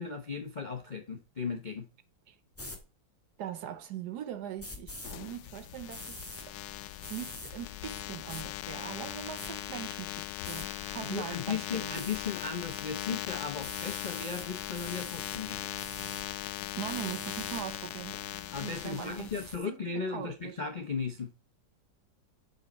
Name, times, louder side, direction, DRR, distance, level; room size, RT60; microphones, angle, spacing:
voice 1, 0.0-1.9 11.1-15.7 18.5-21.3, left 5 dB, 45° left, 0.5 m, -36 dB
sound 1, 2.5-2.8 4.6-5.2 5.9-6.5 7.0-7.5 8.3-8.4 9.0-9.5 10.4-10.7 11.9-12.2 13.6-14.5 14.7-15.4 15.8-16.2 16.9-17.6, left 1 dB, 10° left, 1.6 m, -44 dB
voice 2, 3.4-6.6 7.1-12.0 16.8-18.2 18.6-19.3 19.7-19.8 20.1-20.6, right 10 dB, 70° right, 1.1 m, -41 dB
sound 2, 5.0-19.6, left 12 dB, 75° left, 1.2 m, -39 dB
6.4 x 5.3 x 4.1 m
omnidirectional pair, 2.0 m